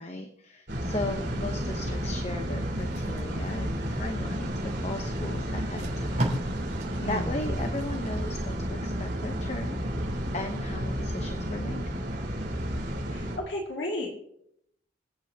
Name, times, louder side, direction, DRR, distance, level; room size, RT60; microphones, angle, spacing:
voice 1, 0.0-4.5 4.8-6.3 7.1-11.8, left 2 dB, 35° left, 5 dB, 0.9 m, -37 dB
sound 1, 0.7-13.4, equal, 60° right, 3.4 m, -32 dB
Packing tape duct tape, 2.8-4.5 5.2-5.3 5.6-8.6 9.0-9.2, right 1 dB, 40° right, 4.0 m, -37 dB
voice 2, 7.0-7.6 13.1-14.1, left 1 dB, 75° left, 0 dB, 2.1 m, -34 dB
26.5 x 9.0 x 2.8 m, 0.73 s
head